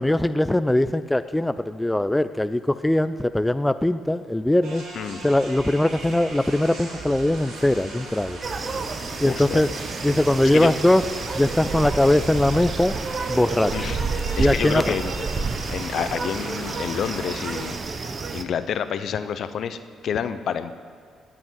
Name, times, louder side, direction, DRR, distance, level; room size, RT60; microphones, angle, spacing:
voice 1, 0.0-4.8 5.2-8.4 9.2-9.7 10.0-11.0 11.3-12.9 13.3-13.9 14.4-15.0, left 1 dB, 10° left, 12 dB, 0.4 m, -21 dB
sound 1, 4.6-17.8, right 2 dB, 85° right, 3.6 m, -38 dB
sound 2, 8.4-18.4, right 4 dB, 40° right, 1.1 m, -30 dB
voice 2, 9.3-9.6 10.4-10.7 13.7-14.0 14.4-20.7, left 8 dB, 65° left, 11 dB, 0.9 m, -29 dB
18.0 x 6.1 x 9.5 m, 2.1 s
cardioid pair, 90°, 0 cm